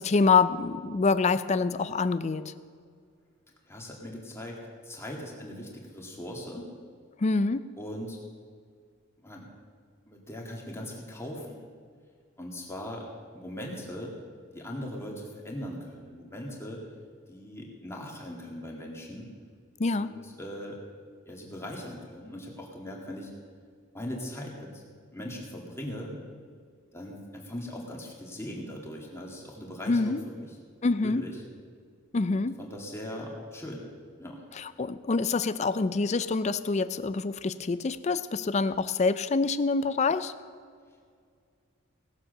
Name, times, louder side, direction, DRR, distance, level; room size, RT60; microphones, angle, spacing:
voice 1, 0.0-2.5 7.2-7.7 19.8-20.1 29.9-30.2 30.8-31.2 32.1-32.5 34.6-40.3, left 4 dB, 35° left, 14 dB, 0.4 m, -26 dB
voice 2, 3.7-4.6 4.8-6.7 7.8-8.2 9.2-9.5 10.1-11.6 12.4-13.1 13.3-14.2 14.5-16.8 17.3-19.3 19.9-20.8 21.3-23.3 23.9-24.8 25.1-26.2 26.9-30.5 31.0-31.4 32.3-33.9 34.2-34.4, left 1 dB, 15° left, -1 dB, 2.1 m, -40 dB
18.0 x 7.4 x 6.7 m, 2.1 s
head